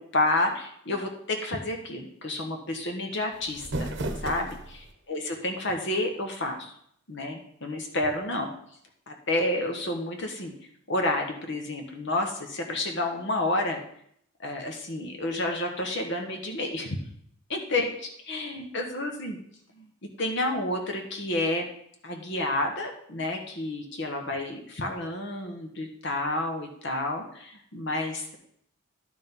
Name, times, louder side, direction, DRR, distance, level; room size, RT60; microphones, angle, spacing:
voice 1, 0.1-3.9 4.2-6.7 7.1-8.5 9.1-10.5 10.9-13.8 14.4-17.0 17.5-19.4 19.8-19.9 20.2-21.7 22.0-28.3, left 2 dB, 55° left, 3 dB, 1.3 m, -30 dB
sound 1, 3.3-4.9, right 1 dB, 55° right, 0.9 m, -34 dB
11.0 x 5.2 x 5.4 m, 0.68 s
head